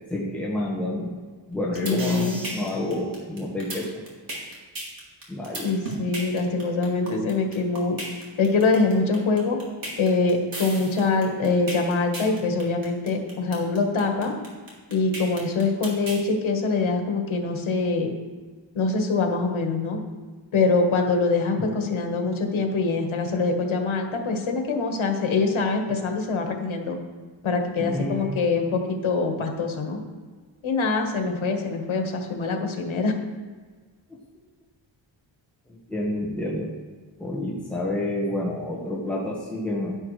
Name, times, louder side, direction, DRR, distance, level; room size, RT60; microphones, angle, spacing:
voice 1, 0.1-1.2 1.5-3.9 5.3-5.8 27.8-28.4 35.7-36.7 37.2-40.0, left 1 dB, 5° left, -5 dB, 1.4 m, -29 dB
sound 1, 1.5-16.2, right 1 dB, 45° right, 2.8 m, -35 dB
voice 2, 1.8-2.4 5.6-8.0 8.4-9.6 10.0-14.3 14.9-18.1 18.7-20.0 20.5-27.0 27.4-30.0 30.6-33.1, left 3 dB, 90° left, 3 dB, 1.5 m, -24 dB
11.0 x 11.0 x 3.2 m, 1.5 s
wide cardioid pair, 140°, 47 cm